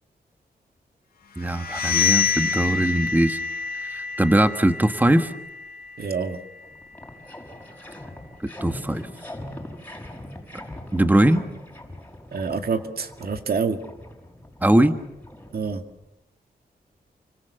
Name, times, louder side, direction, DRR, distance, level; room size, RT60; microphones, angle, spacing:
sound 1, 1.4-7.0, left 6 dB, 70° left, 2.2 m, -28 dB
voice 1, 1.4-3.4 3.8-5.3 8.6-9.1 10.9-11.4 14.6-14.9, right 1 dB, 10° right, 8 dB, 1.4 m, -20 dB
voice 2, 6.0-6.4 12.3-13.8 15.5-15.8, right 5 dB, 70° right, 6 dB, 2.2 m, -27 dB
sound 2, 6.3-6.4 6.6-16.0, left 1 dB, 10° left, 6.0 m, -41 dB
29.0 x 25.5 x 6.9 m, 0.89 s
wide cardioid pair, 105°, 16 cm